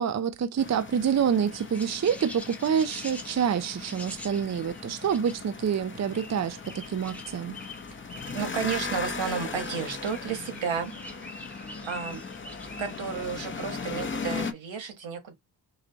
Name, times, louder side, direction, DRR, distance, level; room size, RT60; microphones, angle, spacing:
voice 1, 0.0-7.6, right 7 dB, 40° right, 0.6 m, -27 dB
sound 1, 0.6-14.5, left 5 dB, 25° left, 0.7 m, -38 dB
sound 2, 1.5-14.2, left 1 dB, 5° left, 1.0 m, -46 dB
voice 2, 8.3-10.9 11.8-12.2 12.8-15.3, right 6 dB, 85° right, 1.5 m, -32 dB
4.9 x 2.2 x 3.9 m
cardioid pair, 95°, 45 cm